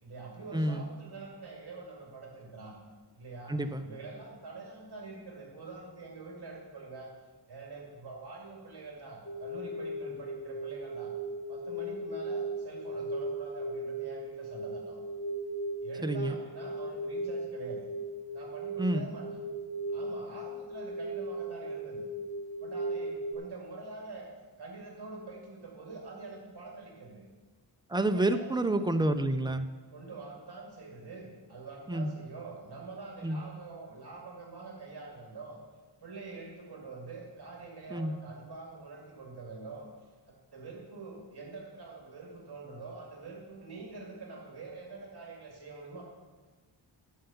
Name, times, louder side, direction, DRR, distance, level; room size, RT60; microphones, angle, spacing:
voice 1, 0.0-2.8 3.1-3.5 3.8-7.1 7.5-11.1 11.5-15.0 15.8-17.8 18.3-19.2 19.9-22.1 22.6-24.3 24.6-27.3 28.0-28.9 29.9-35.6 36.0-39.9 40.5-46.0, right 3 dB, 55° right, -2 dB, 2.1 m, -45 dB
voice 2, 0.5-1.0 3.5-3.8 16.0-16.4 18.8-19.1 27.9-29.7 31.9-32.1 33.2-33.4 37.9-38.2, right 1 dB, 10° right, 8 dB, 0.4 m, -29 dB
sound 1, 9.3-23.4, right 1 dB, 35° left, 0.8 m, -37 dB
11.5 x 5.6 x 6.8 m, 1.4 s
wide cardioid pair, 155°, 46 cm